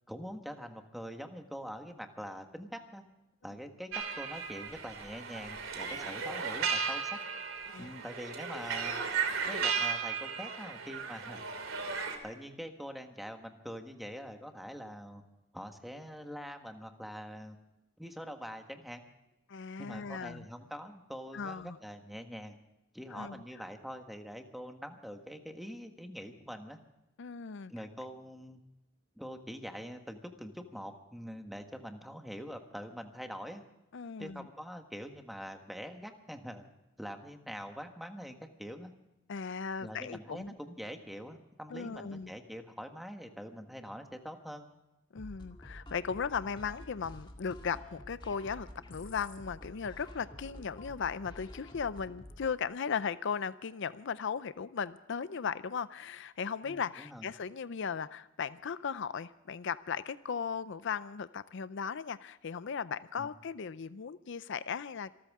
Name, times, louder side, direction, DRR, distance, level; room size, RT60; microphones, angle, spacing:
voice 1, 0.1-3.0 3.4-7.2 7.8-9.0 9.4-11.4 12.2-15.2 15.5-17.6 18.0-19.0 19.8-22.5 22.9-26.8 27.7-28.6 29.2-33.6 34.2-36.6 37.0-38.9 39.8-44.7 56.6-57.3 63.2-63.3, equal, ahead, 5 dB, 1.5 m, -44 dB
sound 1, 3.9-12.2, right 6 dB, 85° right, 2.8 m, -35 dB
voice 2, 19.5-20.5 21.3-21.8 23.1-23.4 27.2-27.7 33.9-34.5 39.3-40.5 41.7-42.3 45.1-65.1, left 6 dB, 65° left, 15 dB, 0.5 m, -37 dB
sound 2, 45.2-52.6, left 1 dB, 25° left, 2.0 m, -49 dB
26.5 x 14.0 x 3.6 m, 0.92 s
head